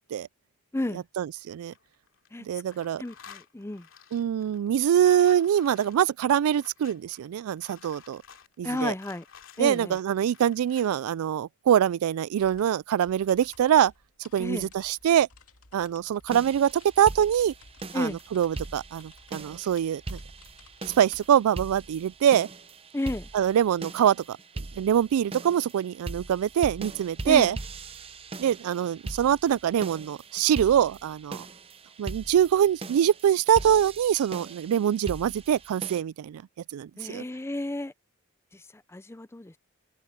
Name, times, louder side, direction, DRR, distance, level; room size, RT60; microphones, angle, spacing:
voice 1, 0.9-1.7 2.4-3.0 4.1-8.2 8.6-8.9 9.6-13.9 14.3-15.3 15.7-17.5 17.9-20.2 21.0-22.5 23.3-27.6 28.4-31.5 32.0-36.4 36.7-37.2, right 9 dB, 85° right, 0.3 m, -24 dB
sound 1, 1.5-2.3 2.6-11.0, left 8 dB, 60° left, 3.1 m, -52 dB
voice 2, 3.0-3.8 8.6-9.2 9.6-10.0 14.4-14.7 17.9-18.2 22.9-23.3 27.3-27.5 37.0-37.9 38.9-39.5, left 1 dB, 10° left, 0.5 m, -31 dB
sound 2, 12.4-21.6, left 4 dB, 85° left, 2.4 m, -55 dB
sound 3, 16.3-36.0, right 2 dB, 25° right, 0.7 m, -41 dB
open air
head